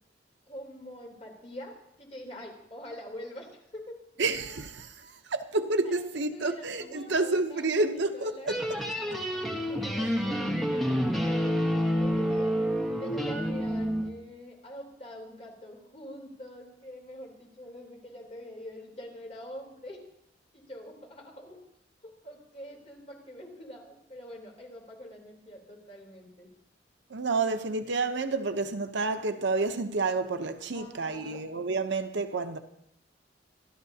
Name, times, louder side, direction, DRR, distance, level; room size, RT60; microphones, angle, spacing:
voice 1, 0.5-4.0 5.8-6.0 6.3-9.2 9.7-12.6 13.0-20.0 20.5-21.6 22.0-26.5 30.7-31.4, equal, 35° left, 3.4 m, -45 dB
voice 2, 4.2-8.6 27.1-32.6, right 3 dB, 70° right, 0.8 m, -29 dB
sound 1, 8.5-14.1, equal, ahead, 1.4 m, -28 dB
26.0 x 11.5 x 2.8 m
head